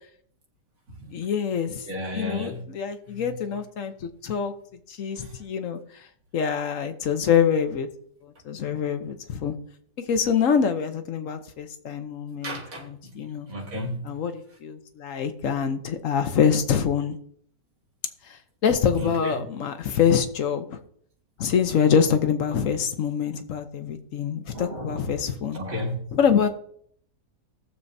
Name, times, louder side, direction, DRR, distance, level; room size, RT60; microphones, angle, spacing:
voice 1, 1.1-1.8 2.1-4.5 4.9-5.8 6.3-7.9 8.4-9.6 10.1-13.5 14.0-17.2 18.6-20.8 21.4-25.6 26.1-26.5, left 7 dB, 60° left, 1.2 m, -25 dB
voice 2, 1.9-2.6 3.1-3.4 5.2-5.3 12.4-13.2 13.5-14.1 19.0-19.4 24.5-25.9, left 1 dB, 65° right, 2.4 m, -34 dB
18.0 x 7.1 x 2.7 m
omnidirectional pair, 1.6 m